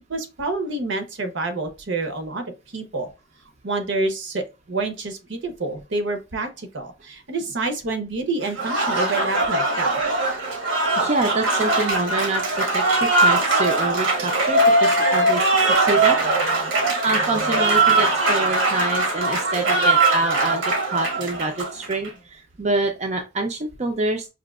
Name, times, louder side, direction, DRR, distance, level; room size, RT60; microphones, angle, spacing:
voice 1, 0.1-2.4 2.7-3.1 3.6-10.0, right 2 dB, 65° right, 0.8 m, -28 dB
Applause, 8.4-22.1, right 2 dB, 80° right, 1.1 m, -21 dB
voice 2, 11.0-16.7 17.0-24.3, right 2 dB, 35° right, 0.5 m, -26 dB
5.0 x 2.7 x 2.3 m
head